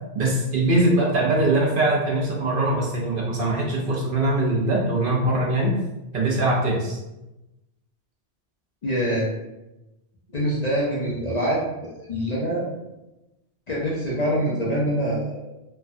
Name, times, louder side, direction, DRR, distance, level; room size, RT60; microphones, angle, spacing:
voice 1, 0.2-5.7 6.1-7.0, right 2 dB, 60° right, -3 dB, 0.7 m, -22 dB
voice 2, 8.8-9.3 10.3-12.7 13.7-15.5, equal, 50° left, -6 dB, 0.5 m, -25 dB
3.2 x 2.2 x 2.5 m, 0.98 s
omnidirectional pair, 1.2 m